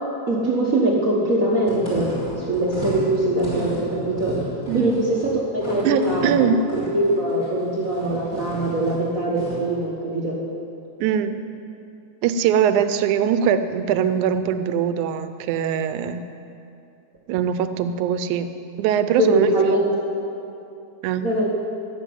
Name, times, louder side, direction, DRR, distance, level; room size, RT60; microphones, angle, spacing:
voice 1, 0.3-2.1 2.5-4.4 4.7-10.4 19.2-19.8 21.2-21.5, right 1 dB, 55° right, -4 dB, 0.9 m, -22 dB
sound 1, 1.6-9.7, right 1 dB, 20° left, 3.5 m, -35 dB
voice 2, 5.8-6.6 11.0-11.4 12.2-16.3 17.3-18.5 18.8-19.5 21.0-21.3, right 8 dB, 80° right, 11 dB, 2.0 m, -22 dB
12.0 x 7.5 x 9.3 m, 2.7 s
omnidirectional pair, 3.5 m